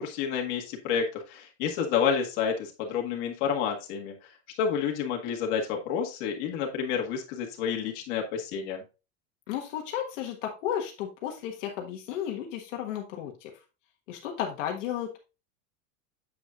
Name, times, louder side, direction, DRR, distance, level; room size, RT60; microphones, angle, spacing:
voice 1, 0.0-4.1 4.6-8.8, left 7 dB, 45° left, 1 dB, 1.8 m, -29 dB
voice 2, 9.5-13.5 14.1-15.2, left 10 dB, 65° left, 2 dB, 1.5 m, -33 dB
8.2 x 7.7 x 2.4 m, 0.30 s
supercardioid pair, 175°, 39 cm